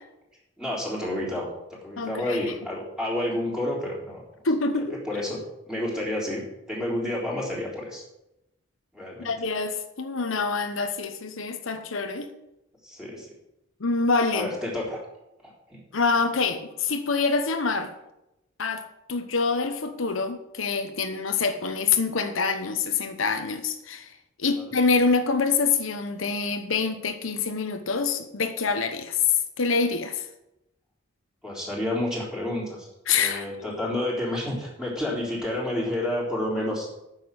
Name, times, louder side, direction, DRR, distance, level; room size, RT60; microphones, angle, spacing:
voice 1, 0.6-1.5 1.8-4.2 5.0-5.4 5.7-8.0 8.9-9.3 12.8-13.3 14.3-15.0 15.4-15.8 31.4-32.9 33.1-36.9, left 1 dB, 5° right, -5 dB, 3.8 m, -30 dB
voice 2, 2.0-2.5 4.4-5.0 9.2-12.3 13.8-14.5 15.9-17.9 18.6-30.3 33.1-33.4, left 4 dB, 75° left, 7 dB, 1.0 m, -26 dB
9.5 x 6.7 x 7.8 m, 0.88 s
head